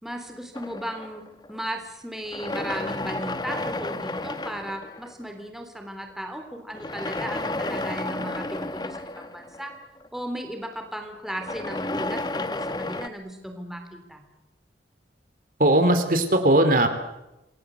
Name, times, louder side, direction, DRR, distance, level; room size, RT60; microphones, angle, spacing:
voice 1, 0.0-9.7 10.1-14.2, equal, ahead, 4 dB, 3.5 m, -36 dB
sound 1, 0.5-1.8 2.3-5.4 6.7-10.2 11.3-13.1, left 2 dB, 25° left, 1.0 m, -32 dB
voice 2, 15.6-16.9, right 1 dB, 50° right, 7 dB, 2.8 m, -19 dB
28.0 x 20.0 x 8.0 m, 0.94 s
head